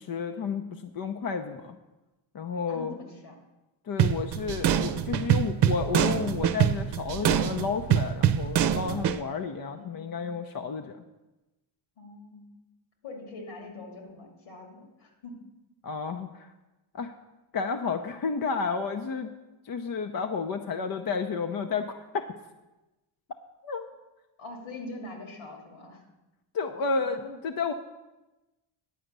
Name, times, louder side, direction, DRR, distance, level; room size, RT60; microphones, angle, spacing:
voice 1, 0.0-1.8 2.3-2.9 3.9-11.0 15.8-16.5 16.9-17.1 17.5-19.3 19.6-22.2 23.6-23.8 26.5-27.7, left 5 dB, 45° left, 6 dB, 0.8 m, -31 dB
voice 2, 2.7-3.4 9.7-10.3 12.0-12.5 13.0-15.4 24.4-26.0 27.0-27.4, left 2 dB, 85° left, 1 dB, 2.8 m, -43 dB
sound 1, 4.0-9.2, right 9 dB, 60° right, 0.7 m, -25 dB
10.0 x 5.0 x 8.1 m, 1.0 s
cardioid pair, 80°, 47 cm